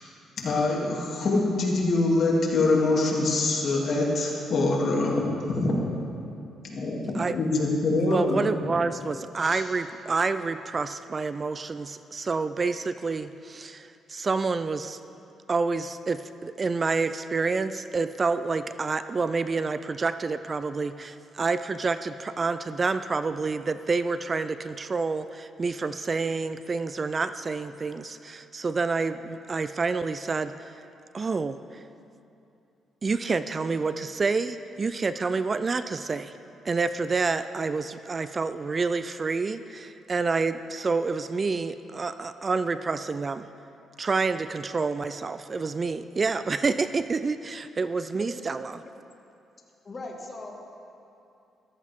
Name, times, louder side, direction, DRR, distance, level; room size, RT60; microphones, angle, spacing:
voice 1, 0.4-5.8 6.6-8.4 9.5-9.6, left 2 dB, 55° left, -3 dB, 2.7 m, -24 dB
voice 2, 8.1-15.0 15.5-30.7 31.1-31.6 33.0-36.3 36.7-43.5 44.0-48.7, right 4 dB, 35° right, 12 dB, 0.4 m, -28 dB
voice 3, 49.8-50.5, left 2 dB, 35° left, 0 dB, 2.0 m, -39 dB
14.5 x 14.0 x 3.6 m, 2.7 s
cardioid pair, 90°, 0 cm